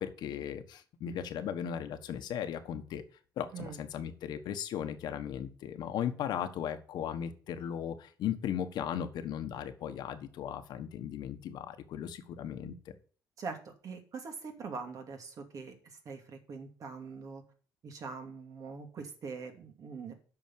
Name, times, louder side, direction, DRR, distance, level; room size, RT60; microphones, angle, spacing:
voice 1, 0.0-3.0 3.4-12.9, left 9 dB, 70° left, 8 dB, 1.4 m, -37 dB
voice 2, 13.4-17.4 17.8-20.1, right 5 dB, 50° right, 5 dB, 2.6 m, -43 dB
8.9 x 6.1 x 7.7 m, 0.40 s
cardioid pair, 115°, 8 cm